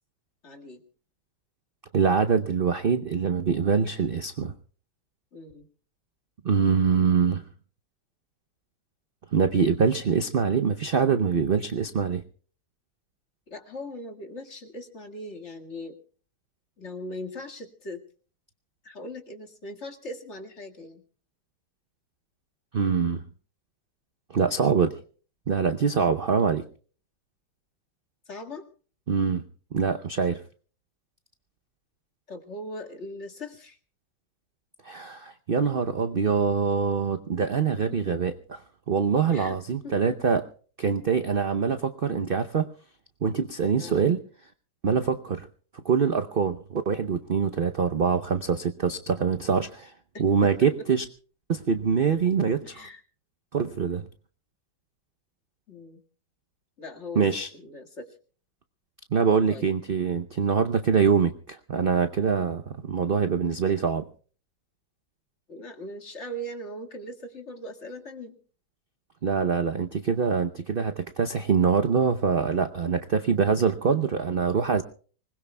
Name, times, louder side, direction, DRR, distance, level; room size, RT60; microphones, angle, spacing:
voice 1, 0.4-0.8 5.3-5.7 13.5-16.0 16.8-18.0 18.8-21.0 28.3-28.7 32.3-33.8 37.9-38.2 39.3-39.6 39.8-39.9 43.8-44.3 50.1-50.5 50.8-50.9 52.6-53.0 55.7-56.0 56.8-57.3 57.5-58.2 59.5-59.7 65.5-68.4, left 1 dB, 40° left, 3 dB, 2.1 m, -40 dB
voice 2, 1.9-4.5 6.4-7.4 9.3-12.2 22.7-23.2 24.3-25.0 25.5-26.6 29.1-29.4 29.7-30.4 34.8-38.3 38.9-40.5 40.8-42.7 43.2-44.2 44.8-45.5 45.8-49.9 50.2-51.0 51.5-52.8 53.5-54.0 57.2-57.5 59.1-64.0 69.2-74.8, right 6 dB, 55° right, 9 dB, 0.6 m, -24 dB
25.5 x 20.5 x 2.2 m, 0.41 s
omnidirectional pair, 2.0 m